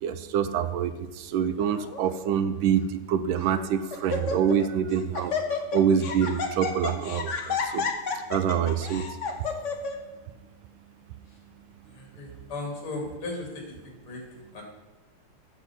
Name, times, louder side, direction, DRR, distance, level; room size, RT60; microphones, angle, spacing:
voice 1, 0.0-7.9 8.3-9.1, right 8 dB, 75° right, 11 dB, 1.3 m, -26 dB
Laughter, 1.6-2.0 2.8-2.9 3.4-3.6 3.9-4.7 4.9-9.9, left 5 dB, 45° left, 1.0 m, -31 dB
voice 2, 11.9-13.5 13.8-14.2 14.5-14.6, left 2 dB, 85° left, 0 dB, 3.4 m, -36 dB
8.3 x 7.3 x 6.0 m, 1.2 s
omnidirectional pair, 2.3 m